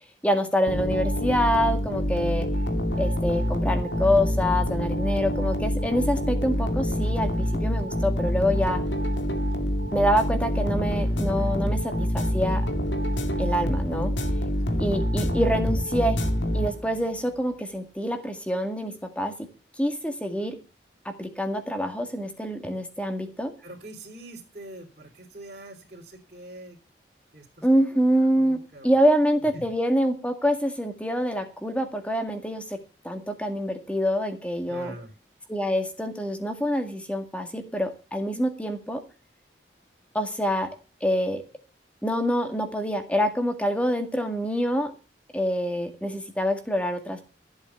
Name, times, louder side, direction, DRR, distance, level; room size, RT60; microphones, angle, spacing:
voice 1, 0.2-2.5 3.0-8.8 9.9-12.7 13.4-14.1 14.8-16.2 16.5-19.5 19.8-20.6 21.1-23.5 27.6-28.6 28.8-32.8 33.0-34.9 35.5-39.0 40.1-40.7 41.0-41.4 42.0-44.9 45.3-47.2, equal, 5° left, 6 dB, 1.9 m, -26 dB
sound 1, 0.7-17.1, equal, 85° left, 2.3 m, -26 dB
voice 2, 23.6-26.8 27.3-29.0 29.5-29.6 34.7-35.1, right 1 dB, 45° right, -4 dB, 3.5 m, -44 dB
14.0 x 8.2 x 7.1 m, 0.34 s
head